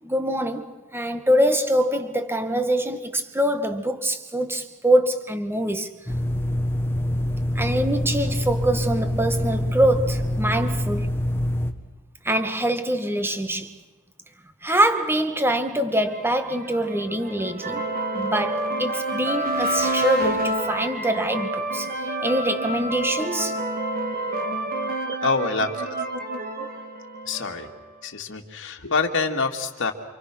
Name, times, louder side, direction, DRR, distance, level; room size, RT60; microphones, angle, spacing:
voice 1, 0.0-5.9 7.6-11.2 12.2-13.7 14.6-17.9 18.1-23.6, right 1 dB, 10° right, 2.0 m, -24 dB
sound 1, 6.1-11.7, left 1 dB, 10° left, 1.8 m, -25 dB
sound 2, 16.1-27.8, right 2 dB, 45° right, 3.8 m, -28 dB
voice 2, 25.2-26.0 27.3-27.7 28.0-29.9, left 4 dB, 60° left, 2.6 m, -26 dB
29.0 x 26.5 x 6.3 m
head